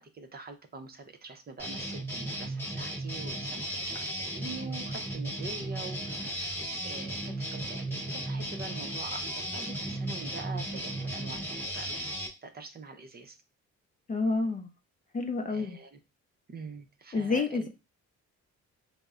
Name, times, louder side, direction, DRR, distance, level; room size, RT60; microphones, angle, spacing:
voice 1, 0.0-13.4 15.5-16.0 16.5-17.7, right 4 dB, 30° right, 6 dB, 0.6 m, -45 dB
sound 1, 1.6-12.3, right 1 dB, 5° left, 1.0 m, -35 dB
voice 2, 14.1-14.7 15.1-15.8 17.1-17.7, left 3 dB, 25° left, 5 dB, 0.5 m, -29 dB
5.2 x 2.0 x 2.4 m, 0.27 s
cardioid pair, 90°, 30 cm